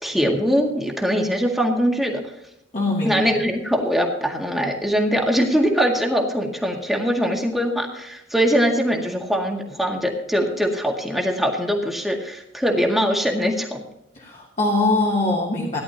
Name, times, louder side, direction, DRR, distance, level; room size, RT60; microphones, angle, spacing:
voice 1, 0.0-2.2 3.0-13.8, equal, ahead, 0 dB, 1.8 m, -22 dB
voice 2, 2.7-3.4 14.1-15.8, left 2 dB, 40° left, -4 dB, 2.4 m, -22 dB
18.0 x 11.0 x 2.9 m, 0.81 s
head